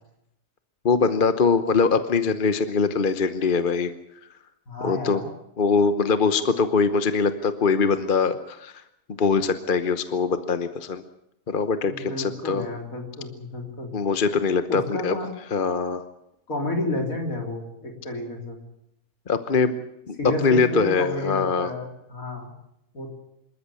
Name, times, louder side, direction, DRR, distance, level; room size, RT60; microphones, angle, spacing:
voice 1, 0.8-3.9 4.8-5.2 5.6-8.7 9.1-11.0 11.5-12.7 13.9-15.2 15.5-16.0 19.3-19.8 20.1-20.2 20.4-21.7, left 5 dB, 40° left, 10 dB, 1.1 m, -22 dB
voice 2, 4.7-5.2 11.8-13.9 14.7-15.3 16.5-18.6 20.2-22.5 22.9-23.1, left 2 dB, 85° left, 2 dB, 4.0 m, -31 dB
26.5 x 13.5 x 8.4 m, 0.81 s
omnidirectional pair, 1.4 m